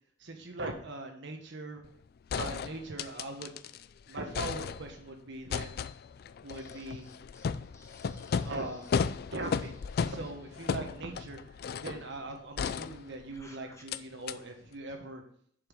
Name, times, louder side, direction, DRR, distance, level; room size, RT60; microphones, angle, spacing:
voice 1, 0.2-1.8 2.3-3.6 4.1-5.8 6.4-7.1 8.4-8.9 9.3-15.2, right 2 dB, 65° right, 4 dB, 1.4 m, -40 dB
sound 1, 1.8-1.9 2.3-3.9 4.1-5.1 5.5-12.0 12.6-13.4 13.9-14.0 14.3-14.4, left 6 dB, 50° left, 0.3 m, -35 dB
voice 2, 6.5-7.4 7.7-8.5 13.3-13.8, left 2 dB, 15° left, 3 dB, 1.2 m, -57 dB
7.0 x 5.6 x 5.5 m, 0.62 s
head